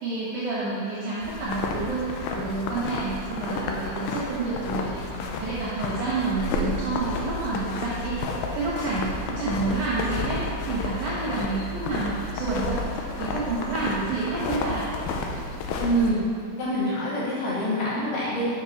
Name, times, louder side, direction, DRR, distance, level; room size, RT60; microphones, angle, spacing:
voice 1, 0.0-14.9, right 3 dB, 60° right, -9 dB, 2.1 m, -29 dB
sound 1, 1.2-16.1, left 3 dB, 85° left, 2.1 m, -31 dB
voice 2, 15.8-16.2 16.6-18.5, right 1 dB, 60° left, -10 dB, 3.0 m, -25 dB
7.2 x 5.8 x 4.2 m, 2.3 s
omnidirectional pair, 5.0 m